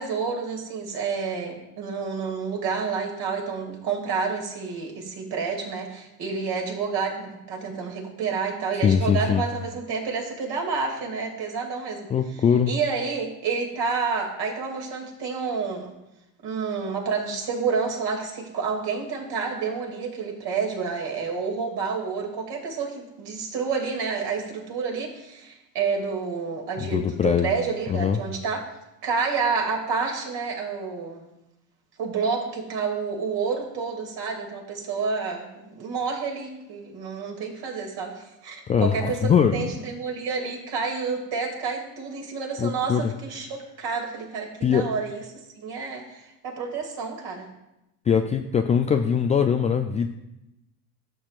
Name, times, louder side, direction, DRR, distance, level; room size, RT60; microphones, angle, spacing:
voice 1, 0.0-12.1 12.7-15.9 16.4-28.7 29.0-31.3 32.0-45.2 45.5-47.5, right 5 dB, 55° right, 1 dB, 2.7 m, -29 dB
voice 2, 8.7-9.4 12.1-12.7 26.8-27.5 27.9-28.2 38.7-39.5 42.6-43.1 44.6-44.9 48.1-50.1, left 7 dB, 15° left, 5 dB, 0.3 m, -22 dB
14.5 x 7.3 x 2.5 m, 0.91 s
hypercardioid pair, 70°, 48 cm